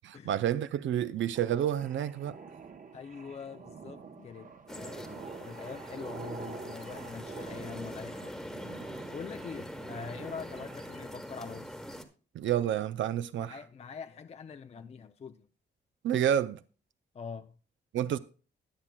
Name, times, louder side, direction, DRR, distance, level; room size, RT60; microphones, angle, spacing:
voice 1, 0.2-2.4 12.3-13.6 16.0-16.6 17.9-18.2, right 10 dB, 80° right, 0.5 m, -29 dB
sound 1, 1.3-11.3, right 5 dB, 45° right, 0.9 m, -47 dB
voice 2, 2.9-8.4 8.9-11.8 13.4-15.5 17.1-17.5, left 6 dB, 35° left, 0.4 m, -44 dB
sound 2, 4.7-12.0, equal, ahead, 1.2 m, -43 dB
21.0 x 7.3 x 2.2 m
wide cardioid pair, 140°, 19 cm